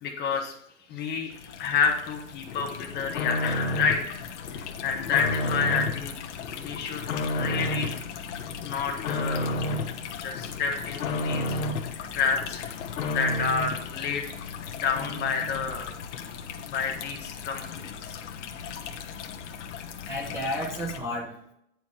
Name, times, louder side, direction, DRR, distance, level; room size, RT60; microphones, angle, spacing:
voice 1, 0.0-0.5 0.9-4.2 4.8-6.2 6.6-7.1 7.3-8.0 8.6-9.7 10.2-11.6 12.1-12.7 13.1-14.3 14.7-15.9 16.6-18.2, left 6 dB, 25° left, 2 dB, 1.5 m, -29 dB
sound 1, 1.3-21.0, left 7 dB, 60° left, 1.2 m, -39 dB
sound 2, 2.5-4.1 4.4-6.0 6.4-8.0 8.4-10.0 10.3-11.9 12.3-13.9 14.3-14.4 14.7-14.8 14.9-15.8 16.1-16.2, left 1 dB, 85° left, 1.6 m, -31 dB
voice 2, 20.0-21.5, left 1 dB, 5° right, -2 dB, 0.9 m, -32 dB
9.6 x 4.5 x 4.8 m, 0.74 s
supercardioid pair, 150°, 40 cm